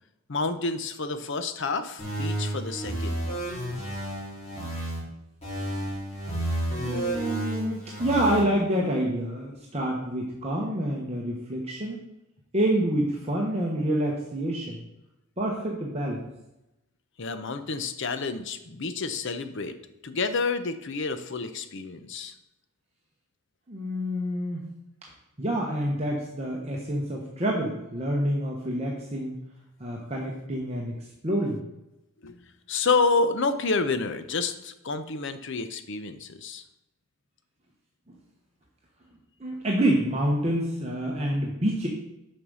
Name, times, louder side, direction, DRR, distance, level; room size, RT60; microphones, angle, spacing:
voice 1, 0.3-3.2 17.2-19.8 20.0-22.3 32.2-36.6, left 4 dB, 55° left, 10 dB, 0.7 m, -29 dB
sound 1, 2.0-5.0 5.4-8.4, right 1 dB, 30° left, 3.6 m, -31 dB
voice 2, 6.7-12.0 12.5-14.8 15.4-16.3 23.7-24.6 25.4-29.3 29.8-31.0 31.2-31.6 39.4-41.9, right 1 dB, 30° right, -2 dB, 1.0 m, -27 dB
7.1 x 5.3 x 6.2 m, 0.90 s
head